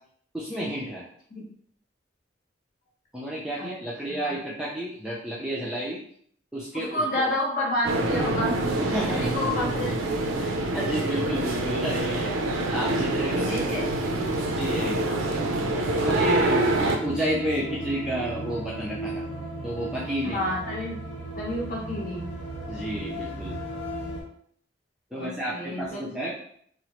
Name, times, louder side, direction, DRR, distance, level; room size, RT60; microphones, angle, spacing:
voice 1, 0.3-1.1 3.1-6.0 6.5-7.3 8.8-9.4 10.4-12.4 12.7-13.6 14.5-15.4 15.9-19.2 19.6-20.4 22.7-23.6 25.1-26.3, equal, 5° right, -6 dB, 0.3 m, -31 dB
voice 2, 6.7-8.6 9.1-10.0 13.4-13.8 14.8-14.9 16.7-16.9 20.2-21.0 21.4-22.3 25.1-26.0, left 1 dB, 45° left, -4 dB, 0.9 m, -30 dB
sound 1, 7.8-17.0, right 2 dB, 90° right, 0.4 m, -26 dB
sound 2, 15.8-24.2, right 1 dB, 70° left, 0.8 m, -35 dB
2.9 x 2.0 x 2.8 m, 0.62 s
head